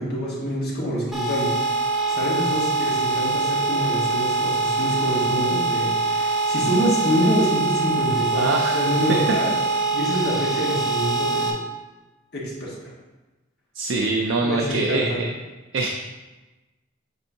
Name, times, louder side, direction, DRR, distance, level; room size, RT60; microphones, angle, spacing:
voice 1, 0.0-8.4 8.7-9.5 9.9-11.5 12.3-12.7 14.4-15.2, equal, 50° left, -5 dB, 1.7 m, -26 dB
sound 1, 1.1-11.5, right 3 dB, ahead, 0.9 m, -23 dB
voice 2, 8.3-9.0 13.7-15.3 15.7-15.9, right 3 dB, 75° right, 1 dB, 0.5 m, -24 dB
8.1 x 4.4 x 2.8 m, 1.2 s
head